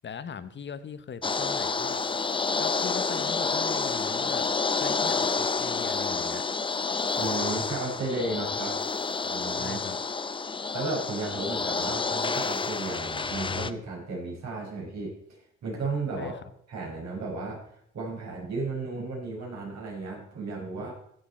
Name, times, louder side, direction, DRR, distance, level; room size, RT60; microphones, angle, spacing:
voice 1, 0.0-4.5 4.8-6.4 9.6-10.0 16.2-16.4, left 7 dB, 40° left, 13 dB, 0.9 m, -40 dB
sound 1, 1.2-13.7, left 4 dB, 15° left, 0.5 m, -29 dB
voice 2, 7.2-8.8 9.2-9.8 10.4-16.3 16.7-20.9, right 3 dB, 60° right, -2 dB, 5.0 m, -34 dB
15.5 x 6.9 x 4.3 m, 0.70 s
cardioid pair, 90°, 30 cm